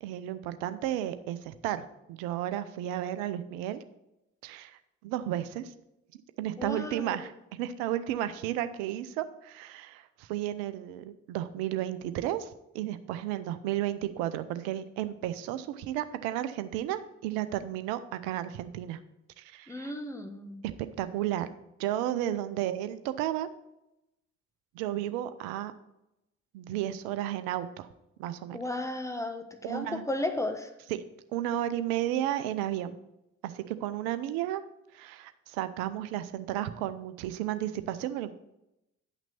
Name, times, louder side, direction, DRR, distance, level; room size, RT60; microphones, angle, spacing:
voice 1, 0.0-3.8 4.4-5.7 6.4-19.0 19.4-19.9 20.8-21.5 21.8-23.5 24.7-25.7 26.5-27.9 28.2-28.6 29.6-30.0 30.9-31.0 31.3-33.0 33.4-34.6 34.9-38.3, right 12 dB, 65° right, 12 dB, 0.7 m, -33 dB
voice 2, 6.6-7.3 19.7-20.6 28.5-30.7, left 1 dB, 10° left, 6 dB, 1.2 m, -34 dB
10.5 x 6.0 x 4.2 m, 0.88 s
figure-of-eight pair, 45°, 38 cm